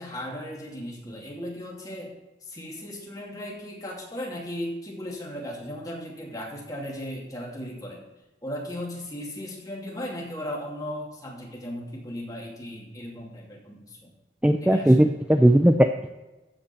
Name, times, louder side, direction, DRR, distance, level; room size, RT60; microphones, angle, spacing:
voice 1, 0.0-2.1 2.4-8.0 8.4-14.1 14.6-15.1, equal, 20° left, -2 dB, 2.8 m, -36 dB
voice 2, 14.4-16.1, right 1 dB, 5° right, 6 dB, 0.4 m, -18 dB
15.0 x 5.3 x 7.0 m, 1.1 s
head